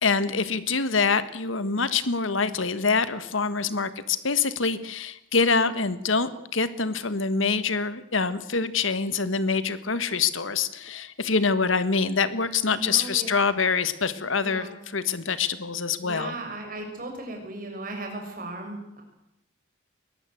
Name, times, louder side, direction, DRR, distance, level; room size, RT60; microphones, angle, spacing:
voice 1, 0.0-16.3, left 5 dB, 80° left, 13 dB, 1.6 m, -25 dB
voice 2, 12.7-13.3 14.4-14.7 16.0-19.0, right 2 dB, 45° right, 2 dB, 6.6 m, -36 dB
22.0 x 20.0 x 8.0 m, 0.82 s
head